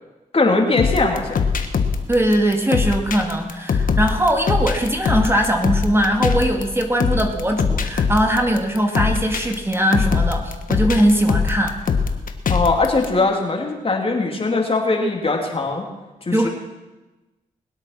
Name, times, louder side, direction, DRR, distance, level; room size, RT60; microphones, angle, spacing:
voice 1, 0.3-1.4 12.5-15.8 16.2-16.5, left 3 dB, 40° left, 1 dB, 3.3 m, -20 dB
sound 1, 0.8-13.0, left 5 dB, 70° left, 1.4 m, -22 dB
voice 2, 2.1-11.8 16.3-16.5, right 1 dB, 15° right, 2 dB, 2.0 m, -20 dB
21.0 x 8.1 x 6.1 m, 1.1 s
cardioid pair, 55°, 15 cm